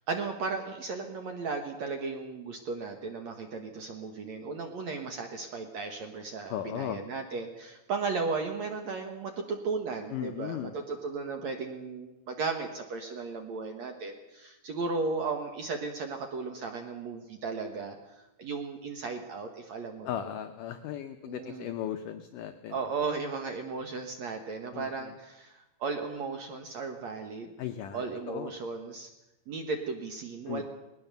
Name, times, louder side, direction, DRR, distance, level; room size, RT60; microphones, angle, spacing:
voice 1, 0.1-20.3 21.3-21.7 22.7-27.5 27.9-29.1 29.5-30.6, right 4 dB, 60° right, 4 dB, 1.9 m, -35 dB
voice 2, 6.5-7.0 10.1-10.7 20.1-22.8 24.7-25.1 27.6-28.5 30.5-30.6, left 10 dB, 80° left, 8 dB, 1.9 m, -37 dB
19.5 x 19.5 x 6.8 m, 0.97 s
omnidirectional pair, 4.8 m